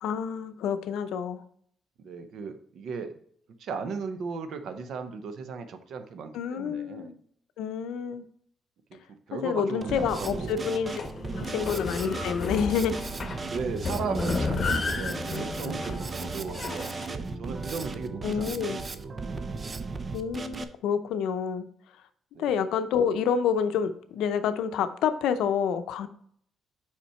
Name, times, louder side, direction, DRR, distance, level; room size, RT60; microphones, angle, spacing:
voice 1, 0.0-1.4 6.3-7.2 7.6-8.2 9.3-10.9 11.4-13.0 18.2-18.8 20.1-21.7 22.4-26.1, left 7 dB, 85° left, 10 dB, 0.5 m, -28 dB
voice 2, 2.0-3.1 3.6-7.1 8.9-9.0 9.3-10.6 11.4-11.5 13.4-19.1 22.3-22.5, right 5 dB, 70° right, 9 dB, 0.8 m, -36 dB
Drum kit, 9.8-20.6, right 3 dB, 35° right, 0.6 m, -36 dB
sound 1, 10.9-17.1, left 4 dB, 40° left, 1.0 m, -33 dB
5.6 x 5.0 x 4.3 m, 0.63 s
cardioid pair, 90°, 0 cm